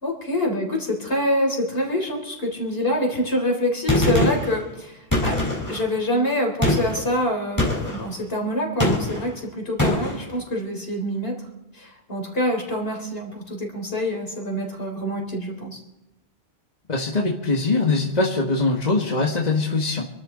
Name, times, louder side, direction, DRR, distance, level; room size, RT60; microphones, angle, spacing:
voice 1, 0.0-11.3 11.7-15.8, left 1 dB, 65° left, 1 dB, 4.1 m, -26 dB
Gunshot gunfire, 3.9-4.5 5.1-5.8 6.6-7.0 7.6-8.0 8.8-9.3 9.8-10.2, left 1 dB, 20° left, 4.2 m, -22 dB
voice 2, 16.9-20.1, left 3 dB, 40° left, -1 dB, 1.8 m, -22 dB
27.0 x 13.0 x 3.9 m, 0.94 s
omnidirectional pair, 1.1 m